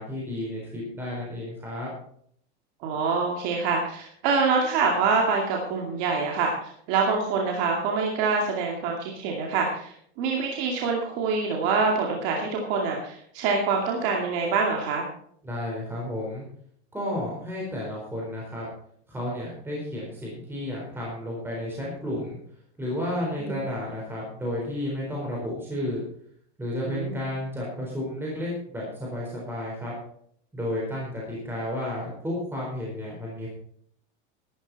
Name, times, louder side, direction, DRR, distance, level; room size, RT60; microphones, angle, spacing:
voice 1, 0.0-1.9 15.4-16.4 16.9-18.7 19.1-22.4 22.8-26.0 26.6-29.9 30.5-33.5, left 1 dB, 5° right, -4 dB, 4.2 m, -32 dB
voice 2, 2.8-15.0 23.4-23.6 26.9-27.2, right 4 dB, 50° right, 0 dB, 2.5 m, -25 dB
12.5 x 12.5 x 4.1 m, 0.64 s
supercardioid pair, 155°, 34 cm